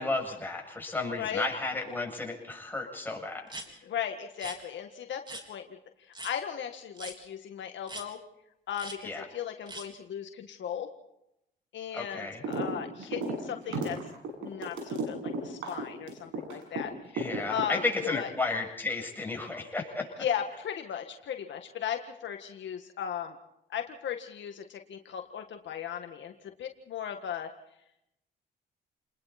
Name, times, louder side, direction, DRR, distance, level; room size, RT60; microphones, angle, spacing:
voice 1, 0.0-3.5 9.0-9.2 11.9-12.4 17.1-20.1, left 3 dB, 10° left, 1 dB, 7.7 m, -33 dB
voice 2, 1.2-1.5 3.8-5.8 6.2-8.2 8.7-10.9 11.7-14.0 14.4-17.2 17.5-18.3 20.2-23.4 23.7-26.3 26.6-27.5, left 9 dB, 65° left, 5 dB, 1.8 m, -36 dB
sound 1, 3.5-3.7 4.3-4.6 5.3-5.4 6.1-6.3 7.0-7.2 7.9-8.1 8.7-9.0 9.7-9.9, right 1 dB, 25° right, 4.1 m, -41 dB
sound 2, 12.4-12.7 13.0-16.8 17.2-18.0, right 2 dB, 85° right, 7.7 m, -33 dB
30.0 x 20.5 x 4.3 m, 0.80 s
cardioid pair, 90°, 20 cm